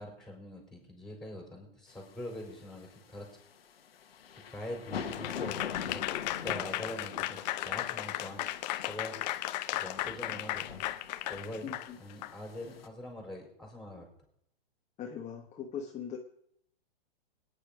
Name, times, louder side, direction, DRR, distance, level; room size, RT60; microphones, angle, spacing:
voice 1, 0.0-3.3 4.5-6.1 6.4-9.1 9.7-10.8 11.3-11.7 12.0-14.1, left 1 dB, ahead, 1 dB, 4.8 m, -43 dB
sound 1, 1.9-12.9, left 7 dB, 80° left, 1.5 m, -44 dB
Applause / Crowd, 5.1-12.3, left 15 dB, 45° left, 0.8 m, -35 dB
voice 2, 11.6-12.0 15.0-16.2, left 7 dB, 25° left, 1 dB, 1.3 m, -40 dB
19.5 x 9.8 x 5.1 m, 0.75 s
hypercardioid pair, 120°, 29 cm